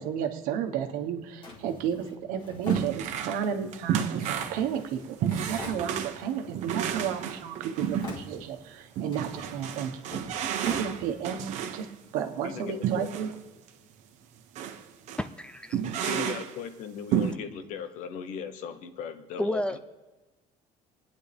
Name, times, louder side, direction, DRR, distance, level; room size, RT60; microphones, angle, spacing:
voice 1, 0.0-9.9 10.6-11.9 12.1-13.3, right 8 dB, 80° right, 6 dB, 1.3 m, -32 dB
Drawer open or close, 1.4-3.5 4.2-6.3 6.7-7.4 7.7-8.7 9.0-11.5, left 3 dB, 35° left, 1.9 m, -45 dB
sound 1, 2.7-3.5 3.7-8.4 9.0-11.9 12.8-13.3 13.7-13.8 14.6-14.8 15.1-15.2 15.7-16.6 17.1-17.3, right 9 dB, 55° right, 1.0 m, -31 dB
voice 2, 12.4-13.3 15.9-19.8, left 7 dB, 65° left, 9 dB, 1.0 m, -38 dB
voice 3, 15.2-15.8 19.4-19.8, left 1 dB, 5° left, 11 dB, 0.4 m, -30 dB
26.5 x 9.8 x 3.5 m, 1.2 s
cardioid pair, 155°, 14 cm